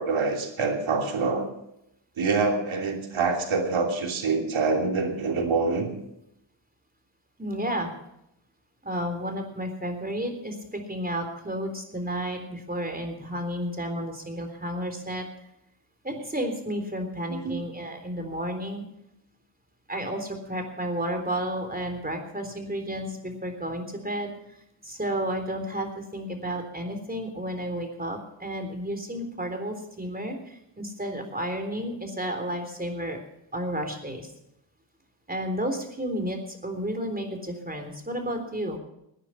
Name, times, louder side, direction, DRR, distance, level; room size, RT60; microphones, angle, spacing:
voice 1, 0.0-1.5 2.2-5.9 17.3-17.6, right 4 dB, 70° right, 2 dB, 3.0 m, -26 dB
voice 2, 7.4-7.9 8.8-15.3 16.0-18.8 19.9-24.3 24.8-33.2 33.5-34.3 35.3-38.8, equal, 20° right, 5 dB, 3.7 m, -32 dB
17.5 x 9.8 x 5.8 m, 0.80 s
cardioid pair, 65°, 48 cm